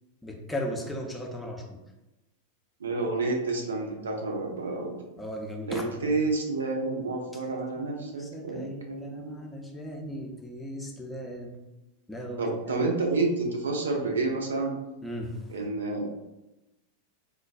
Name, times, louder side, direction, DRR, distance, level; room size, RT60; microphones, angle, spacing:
voice 1, 0.2-1.8 5.2-6.0 7.7-11.6 12.1-12.8 15.0-15.5, equal, 5° left, 0 dB, 0.5 m, -37 dB
voice 2, 2.8-5.0 5.7-9.4 12.4-14.8 15.5-16.1, right 3 dB, 70° right, 1 dB, 0.5 m, -29 dB
4.4 x 2.2 x 2.4 m, 0.98 s
figure-of-eight pair, 90°, 0 cm